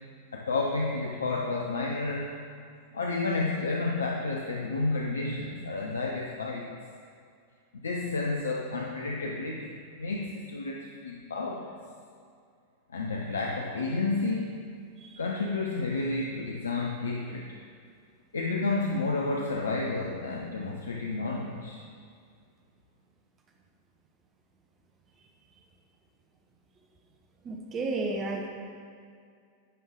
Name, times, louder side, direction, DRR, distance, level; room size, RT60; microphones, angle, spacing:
voice 1, 0.3-2.4 2.9-6.7 7.8-11.6 12.9-14.5 15.2-17.5 18.3-21.8, left 3 dB, 70° left, 0 dB, 0.6 m, -31 dB
voice 2, 27.5-28.5, right 2 dB, 25° right, 2 dB, 0.8 m, -31 dB
11.0 x 5.4 x 3.7 m, 2.2 s
figure-of-eight pair, 90°, 0 cm